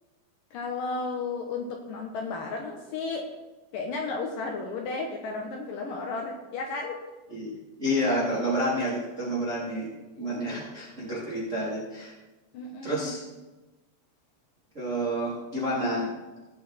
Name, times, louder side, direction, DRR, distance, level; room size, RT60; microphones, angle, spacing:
voice 1, 0.5-3.3 3.7-7.0 10.2-10.6 12.5-13.1, left 3 dB, 75° left, 1 dB, 2.0 m, -33 dB
voice 2, 7.8-9.9 10.2-12.1 12.8-13.2 14.7-16.1, equal, 20° right, -7 dB, 2.7 m, -29 dB
19.0 x 6.4 x 4.2 m, 1.1 s
omnidirectional pair, 5.3 m